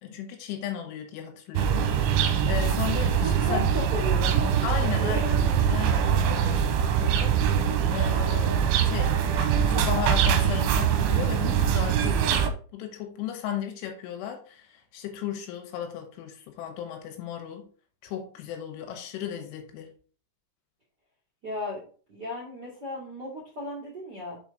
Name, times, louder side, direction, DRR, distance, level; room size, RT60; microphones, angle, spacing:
voice 1, 0.0-3.7 4.6-5.4 5.7-9.2 9.6-17.6 18.0-19.9, left 9 dB, 75° left, 3.4 m, -36 dB
sound 1, 1.6-12.5, right 8 dB, 85° right, 3.1 m, -23 dB
voice 2, 3.2-5.6 21.4-21.8 22.1-24.4, equal, 35° right, 1.8 m, -35 dB
7.0 x 4.7 x 4.0 m
omnidirectional pair, 5.7 m